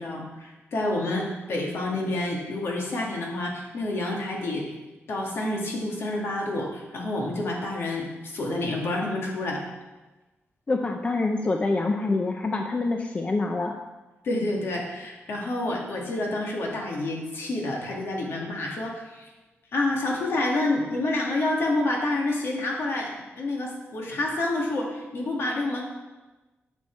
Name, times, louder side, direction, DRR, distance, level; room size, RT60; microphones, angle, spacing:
voice 1, 0.0-4.7 5.1-9.6 14.2-19.3 19.7-25.8, left 2 dB, 70° left, -1 dB, 2.1 m, -28 dB
voice 2, 10.7-13.7, left 3 dB, 30° left, 4 dB, 0.6 m, -26 dB
10.0 x 6.3 x 4.6 m, 1.1 s
wide cardioid pair, 125°, 4 cm